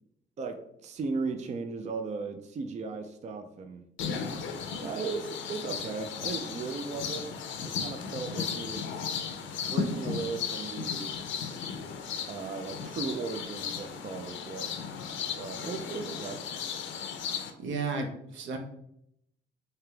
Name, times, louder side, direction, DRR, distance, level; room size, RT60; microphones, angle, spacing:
voice 1, 0.4-3.8 4.8-7.3 7.6-9.0 9.7-11.2 12.3-14.9 15.4-16.4, right 4 dB, 35° right, 6 dB, 0.4 m, -36 dB
sound 1, 4.0-17.5, left 6 dB, 75° left, 0.6 m, -35 dB
voice 2, 17.6-18.6, right 4 dB, 75° right, 4 dB, 0.7 m, -33 dB
3.2 x 2.8 x 3.3 m, 0.75 s
cardioid pair, 90°, 20 cm